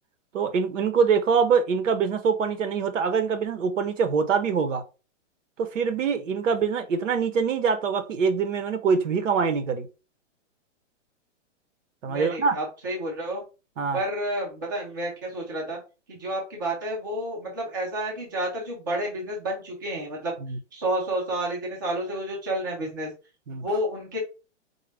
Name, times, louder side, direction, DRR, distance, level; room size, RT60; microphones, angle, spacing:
voice 1, 0.3-4.8 5.6-9.9 12.0-12.6 13.8-14.0 20.5-20.6 23.5-23.7, right 6 dB, 75° right, 0.9 m, -24 dB
voice 2, 12.1-13.4 13.9-15.8 16.1-20.4 20.7-23.1 23.6-24.2, right 1 dB, 15° right, 0.5 m, -30 dB
4.0 x 2.2 x 3.2 m
hypercardioid pair, 175°, 38 cm